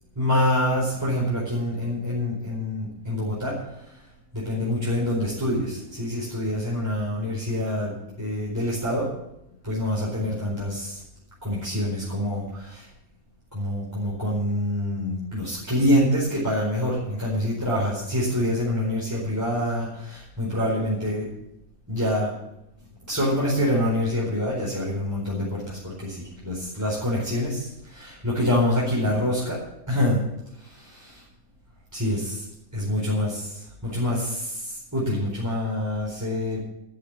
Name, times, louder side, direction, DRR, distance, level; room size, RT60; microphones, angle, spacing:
voice 1, 0.2-4.0 4.3-9.1 9.6-11.0 11.4-12.9 13.5-21.3 21.9-22.3 23.1-29.6 29.9-30.2 30.6-31.2 31.9-32.4 32.7-36.6, left 1 dB, 10° right, -6 dB, 4.5 m, -26 dB
13.0 x 9.1 x 8.4 m, 0.84 s
omnidirectional pair, 1.5 m